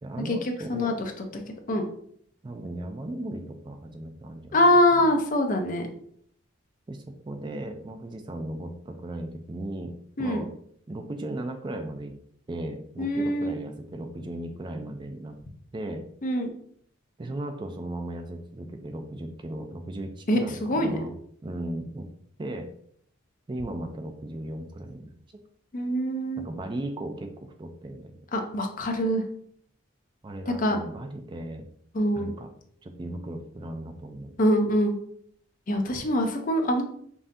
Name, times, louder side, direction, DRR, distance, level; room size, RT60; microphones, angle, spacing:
voice 1, 0.0-1.0 2.4-5.0 6.9-10.5 10.9-12.2 12.5-15.4 15.7-16.0 17.2-21.1 21.4-22.1 22.4-22.7 23.5-25.1 26.4-28.2 30.2-31.7 32.1-32.5 32.8-34.3, right 1 dB, 25° right, 5 dB, 0.3 m, -36 dB
voice 2, 4.5-5.9 10.2-10.4 13.0-13.6 16.2-16.5 20.3-21.0 25.7-26.4 28.3-29.2 30.5-30.8 31.9-32.3 34.4-35.0 35.7-36.8, left 1 dB, 40° left, 4 dB, 0.6 m, -24 dB
5.4 x 2.6 x 2.6 m, 0.64 s
head